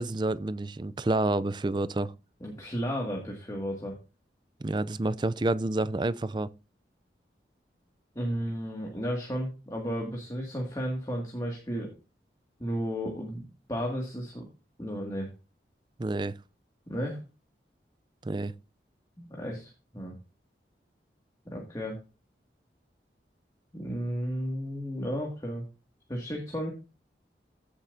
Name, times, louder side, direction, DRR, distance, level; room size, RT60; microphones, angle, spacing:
voice 1, 0.0-2.1 4.6-6.5 16.0-16.4 18.2-18.5, right 2 dB, 25° right, 0.4 m, -29 dB
voice 2, 2.4-3.9 8.2-11.9 12.6-13.4 13.7-14.4 14.8-15.3 16.9-17.2 19.2-20.2 21.5-22.0 23.7-25.6 26.1-26.7, equal, 20° left, 2.1 m, -33 dB
15.5 x 7.3 x 2.7 m
head